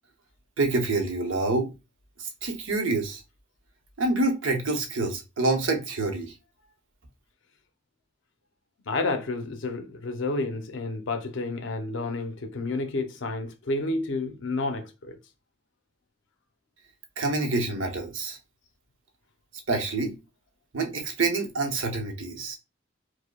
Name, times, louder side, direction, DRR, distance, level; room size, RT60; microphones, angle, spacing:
voice 1, 0.6-1.7 2.2-3.2 4.0-6.3 17.2-18.4 19.7-20.1 20.7-22.6, right 3 dB, 75° right, 0.8 m, -27 dB
voice 2, 8.9-15.2, left 2 dB, 65° left, 0.6 m, -30 dB
4.8 x 2.1 x 2.2 m
head